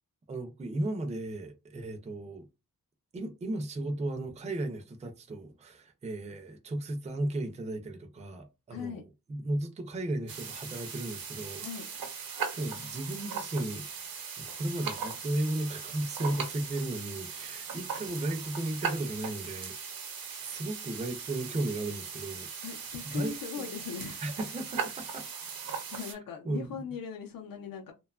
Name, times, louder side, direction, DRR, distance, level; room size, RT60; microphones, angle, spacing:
voice 1, 0.3-2.4 3.1-12.0 12.5-13.9 14.4-20.0 20.4-22.9 23.1-23.3 24.2-25.3 26.1-26.2 26.5-26.8, right 1 dB, 20° right, 0.4 m, -35 dB
voice 2, 8.7-9.0 11.6-11.8 22.6-24.2 25.9-27.9, left 6 dB, 75° left, 0.6 m, -39 dB
sound 1, 10.3-26.1, right 6 dB, 85° right, 0.7 m, -39 dB
2.7 x 2.2 x 2.3 m
wide cardioid pair, 135°, 34 cm